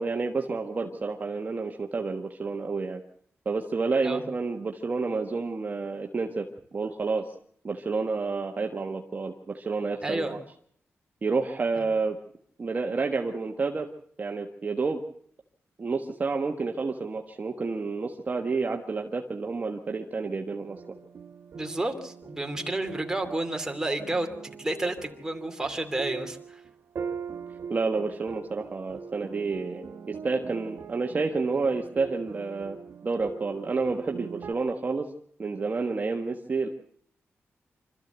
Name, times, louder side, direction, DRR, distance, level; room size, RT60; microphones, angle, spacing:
voice 1, 0.0-3.0 3.4-7.3 7.6-10.4 11.2-12.2 12.6-13.9 14.2-15.0 15.8-20.8 27.7-32.8 33.0-35.1 35.4-36.7, right 4 dB, 35° right, 3 dB, 1.3 m, -29 dB
voice 2, 10.0-10.4 21.5-26.6, right 2 dB, 15° right, 4 dB, 2.7 m, -31 dB
sound 1, 20.7-34.5, right 6 dB, 65° right, 1.5 m, -42 dB
25.5 x 13.5 x 8.0 m, 0.65 s
wide cardioid pair, 125°, 5 cm